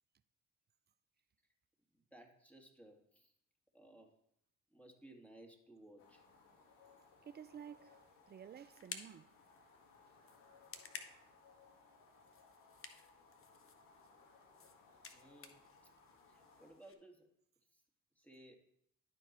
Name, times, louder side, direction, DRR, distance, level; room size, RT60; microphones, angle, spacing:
voice 1, 1.9-3.3 3.7-4.2 4.7-6.2 15.1-15.6 16.3-17.3 17.7-17.8 18.2-18.6, right 1 dB, 5° left, 2.1 m, -60 dB
sound 1, 6.0-16.7, left 4 dB, 70° left, 1.9 m, -65 dB
voice 2, 7.2-9.4 10.7-10.9, right 8 dB, 30° right, 0.5 m, -53 dB
sound 2, 7.7-16.9, left 5 dB, 40° left, 1.1 m, -56 dB
11.5 x 4.6 x 4.3 m
hypercardioid pair, 55°, 34 cm